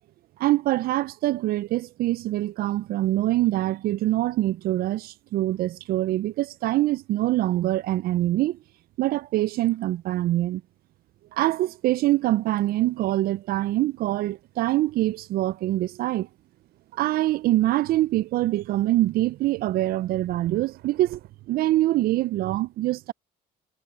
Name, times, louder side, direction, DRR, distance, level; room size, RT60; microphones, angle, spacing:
voice 1, 0.4-8.6 9.0-10.6 11.3-16.3 16.9-21.2 21.5-23.1, right 15 dB, 65° right, 0.4 m, -24 dB
sound 1, 11.7-21.3, right 16 dB, 85° right, 7.8 m, -57 dB
cardioid pair, 110°, 17 cm